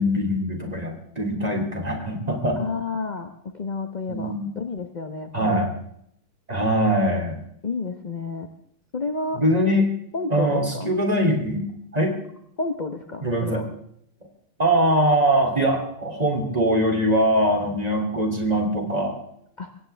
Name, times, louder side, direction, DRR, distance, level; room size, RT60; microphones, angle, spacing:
voice 1, 0.0-2.6 4.1-4.5 5.3-5.7 6.5-7.4 9.4-9.9 10.3-11.6 11.9-12.2 13.2-13.6 14.6-19.1, equal, 15° right, 2 dB, 3.0 m, -22 dB
voice 2, 2.6-5.6 7.6-8.5 8.9-9.4 10.1-10.9 12.6-13.7 19.6-19.7, left 3 dB, 35° left, 6 dB, 0.7 m, -30 dB
23.5 x 17.0 x 3.4 m, 0.71 s
omnidirectional pair, 2.3 m